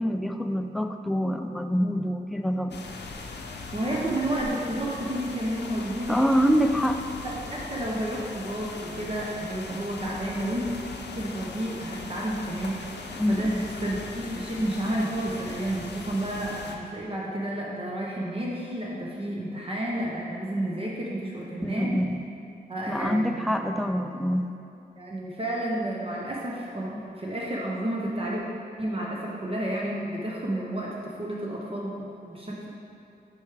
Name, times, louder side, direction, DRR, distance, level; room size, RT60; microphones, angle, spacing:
voice 1, 0.0-2.8 6.1-7.0 13.1-13.6 21.6-22.2 22.9-24.5 32.0-32.1, equal, ahead, 6 dB, 0.3 m, -25 dB
sound 1, 2.7-16.8, left 3 dB, 90° left, 0.6 m, -39 dB
voice 2, 3.7-6.2 7.2-10.6 11.1-21.9 22.7-23.4 25.0-28.4 28.8-32.0 32.3-32.7, right 1 dB, 35° right, -4 dB, 0.8 m, -31 dB
6.2 x 4.7 x 4.8 m, 2.7 s
wide cardioid pair, 105°, 17 cm